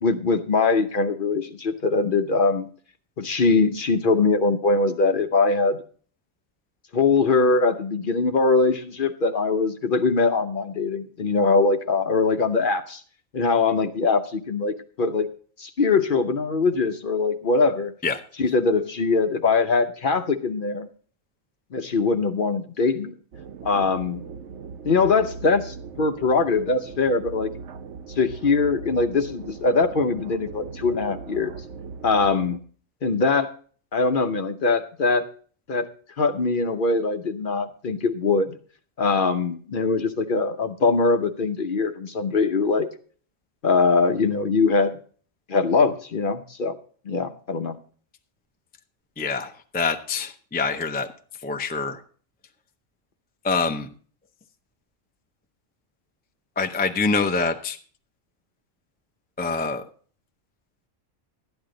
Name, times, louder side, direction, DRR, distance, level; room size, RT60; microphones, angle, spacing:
voice 1, 0.0-2.7 3.2-5.8 6.9-13.0 13.3-15.3 15.6-17.9 18.4-20.9 21.7-23.1 23.6-24.2 24.8-27.5 28.2-31.5 32.0-32.6 33.0-33.5 33.9-35.3 35.7-35.9 36.2-38.6 39.0-42.9 43.6-44.9 45.5-46.7 47.1-47.8, left 4 dB, 50° left, 8 dB, 0.8 m, -22 dB
sound 1, 23.3-32.6, right 5 dB, 65° right, 1.0 m, -39 dB
voice 2, 49.2-51.1 51.4-52.0 53.4-53.9 56.6-57.8 59.4-59.8, left 4 dB, 10° left, 6 dB, 0.4 m, -25 dB
12.5 x 10.0 x 3.8 m, 0.43 s
omnidirectional pair, 1.3 m